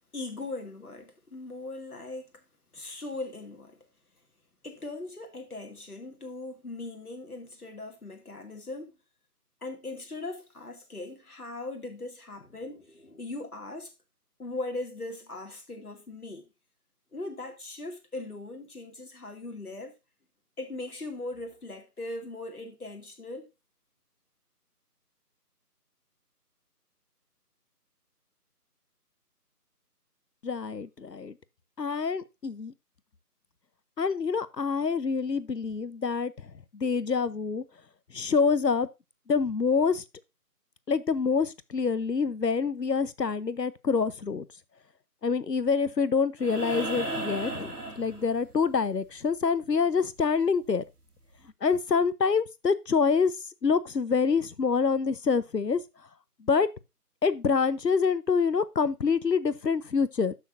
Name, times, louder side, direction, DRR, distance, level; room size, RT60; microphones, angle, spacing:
voice 1, 0.1-2.4 2.7-3.9 4.6-9.0 9.6-13.9 14.4-16.5 17.1-19.9 20.6-23.5, left 2 dB, 65° left, 2.6 m, -39 dB
voice 2, 30.4-31.3 31.8-32.7 34.0-36.3 36.7-37.6 38.1-38.9 39.3-40.0 40.9-44.4 45.2-50.8 51.6-53.3 53.6-55.8 56.5-56.7 57.2-60.3, left 5 dB, 90° left, 0.9 m, -26 dB
sound 1, 46.4-48.7 50.6-50.7, right 2 dB, 75° right, 3.5 m, -35 dB
13.0 x 6.4 x 2.6 m
figure-of-eight pair, 160°, 48 cm